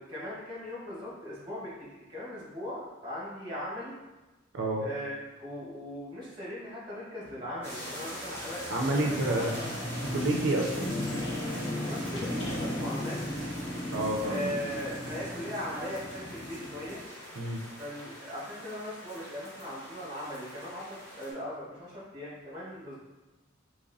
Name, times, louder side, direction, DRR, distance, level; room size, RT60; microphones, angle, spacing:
voice 1, 0.0-3.9 4.8-8.6 8.9-9.7 11.8-13.2 14.2-17.0 17.8-23.0, equal, 25° right, -6 dB, 1.3 m, -39 dB
voice 2, 4.5-4.8 8.7-9.5 10.1-11.0 13.9-14.5 17.4-17.6, right 1 dB, 80° right, 0 dB, 0.5 m, -29 dB
sound 1, 7.2-17.0, left 1 dB, 90° left, 1.3 m, -37 dB
sound 2, 7.6-21.3, equal, 15° left, 1.3 m, -43 dB
4.0 x 3.0 x 2.6 m, 1.1 s
head